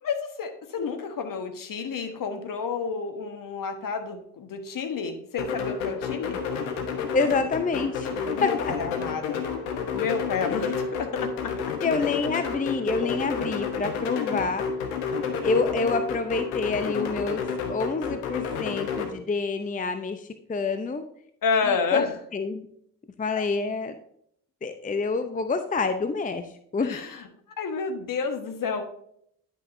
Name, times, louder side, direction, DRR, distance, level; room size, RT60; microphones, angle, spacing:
voice 1, 0.0-6.4 8.3-9.4 9.9-11.6 12.8-13.2 21.4-22.1 23.3-23.4 26.8-27.2 27.6-28.8, left 5 dB, 50° left, 7 dB, 1.3 m, -30 dB
sound 1, 5.4-19.1, left 6 dB, 80° left, 1.1 m, -30 dB
voice 2, 7.1-8.7 10.5-10.7 11.8-14.7 15.4-17.4 17.7-21.0 21.7-22.1 22.3-22.7 23.2-23.9 24.6-27.0, left 4 dB, 20° left, 9 dB, 0.6 m, -27 dB
10.5 x 6.1 x 2.7 m, 0.69 s
hypercardioid pair, 45°, 42 cm